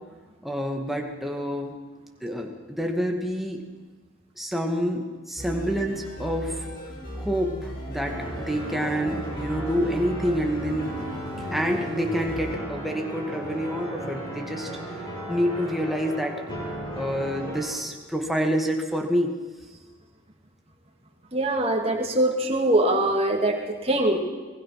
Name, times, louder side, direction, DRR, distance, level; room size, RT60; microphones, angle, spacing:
voice 1, 0.4-1.8 2.2-3.6 4.4-6.7 7.1-11.0 11.5-14.7 15.3-16.4 16.9-19.3, equal, ahead, 1 dB, 2.1 m, -27 dB
sound 1, 5.4-12.5, equal, 45° left, 6.9 m, -37 dB
sound 2, 8.0-17.7, right 1 dB, 20° left, 7.5 m, -36 dB
voice 2, 21.3-24.2, right 1 dB, 30° right, 1 dB, 2.6 m, -23 dB
24.0 x 20.5 x 6.0 m, 1.3 s
head